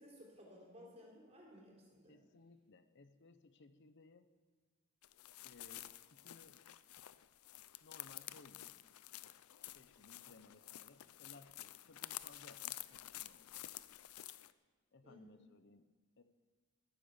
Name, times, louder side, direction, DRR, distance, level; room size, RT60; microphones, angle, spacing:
voice 1, 0.0-2.2 15.0-15.4, equal, 30° right, -3 dB, 3.9 m, -58 dB
voice 2, 2.1-4.3 5.4-6.6 7.8-8.8 9.2-9.4 9.7-13.7 14.9-15.9 16.2-16.3, left 3 dB, 55° left, 11 dB, 0.7 m, -62 dB
sound 1, 5.0-14.5, left 14 dB, 90° left, 0.5 m, -51 dB
12.5 x 10.5 x 7.2 m, 1.4 s
head